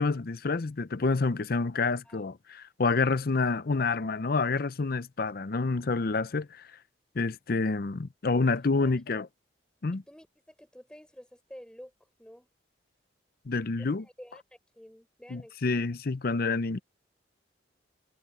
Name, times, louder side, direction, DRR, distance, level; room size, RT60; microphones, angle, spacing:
voice 1, 0.0-6.7 7.1-9.3 9.8-10.0 13.5-14.1 15.3-16.8, left 3 dB, 55° left, 0.6 m, -28 dB
voice 2, 10.1-11.9 12.2-12.5 13.8-15.5, equal, 5° left, 5.1 m, -50 dB
head